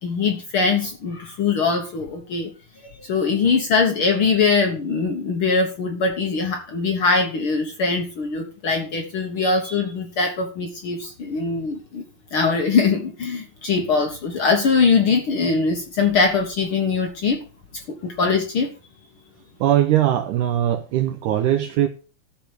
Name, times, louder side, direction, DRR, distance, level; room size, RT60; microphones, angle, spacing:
voice 1, 0.0-2.5 2.8-12.0 12.3-17.4 17.7-18.7, left 4 dB, 75° left, 1.2 m, -22 dB
voice 2, 19.6-21.9, right 12 dB, 80° right, 1.9 m, -20 dB
13.5 x 4.6 x 6.5 m
omnidirectional pair, 4.3 m